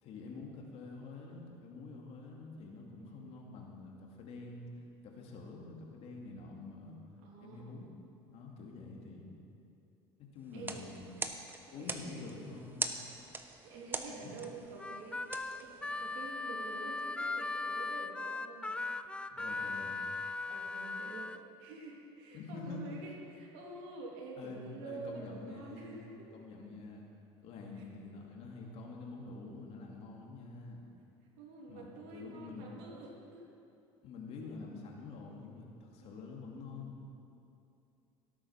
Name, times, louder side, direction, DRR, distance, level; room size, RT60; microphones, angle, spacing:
voice 1, 0.0-4.7 5.0-7.0 7.4-7.9 8.3-9.3 10.3-11.1 11.7-12.9 14.1-14.3 19.0-20.0 22.3-23.0 24.4-27.1 27.4-30.9 31.7-32.7 34.0-37.0, left 3 dB, 55° left, 0 dB, 2.5 m, -47 dB
voice 2, 3.0-3.4 7.2-7.7 10.5-10.8 11.7-12.2 13.6-15.3 15.6-18.9 20.5-26.3 27.8-27.9 31.4-33.4 36.0-36.3, right 3 dB, 75° right, -2 dB, 2.9 m, -48 dB
sound 1, 10.5-16.3, right 3 dB, 15° right, 0.9 m, -43 dB
Harmonica, 14.8-21.4, left 3 dB, 10° left, 0.4 m, -38 dB
17.5 x 8.7 x 5.9 m, 2.7 s
supercardioid pair, 110°, 12 cm